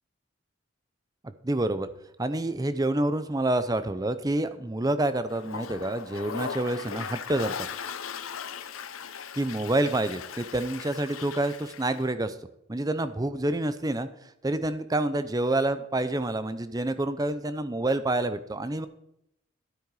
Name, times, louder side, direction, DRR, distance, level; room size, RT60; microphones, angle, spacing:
voice 1, 1.2-1.9 2.2-7.7 9.3-12.4 12.7-14.1 14.4-18.9, right 2 dB, 20° right, 12 dB, 0.6 m, -28 dB
Toilet flush, 5.3-12.1, left 7 dB, 80° left, 0.7 m, -38 dB
12.5 x 8.8 x 4.8 m, 0.80 s
head